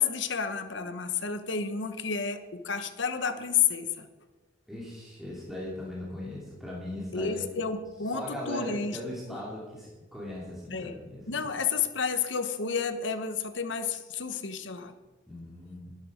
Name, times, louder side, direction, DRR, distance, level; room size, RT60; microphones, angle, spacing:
voice 1, 0.0-4.1 7.1-9.0 10.7-11.0 11.3-14.9, left 6 dB, 70° left, 9 dB, 1.1 m, -30 dB
voice 2, 4.7-7.4 8.1-11.5 15.3-15.9, left 1 dB, ahead, -5 dB, 2.9 m, -39 dB
12.0 x 12.0 x 5.1 m, 1.2 s
head